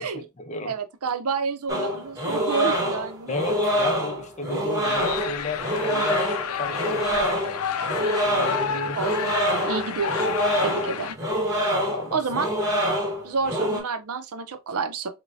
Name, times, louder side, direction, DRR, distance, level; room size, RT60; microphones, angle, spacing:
voice 1, 0.0-0.7 3.3-6.2 6.5-7.1 8.2-9.0 11.9-12.2, left 2 dB, 35° left, 0.7 m, -33 dB
voice 2, 0.7-3.3 9.0-11.2 12.1-12.5 13.2-15.1, right 5 dB, 90° right, 0.6 m, -29 dB
sound 1, 1.7-13.8, equal, 15° right, 1.1 m, -26 dB
sound 2, 4.8-11.2, left 7 dB, 80° left, 0.5 m, -30 dB
6.1 x 2.2 x 2.6 m
head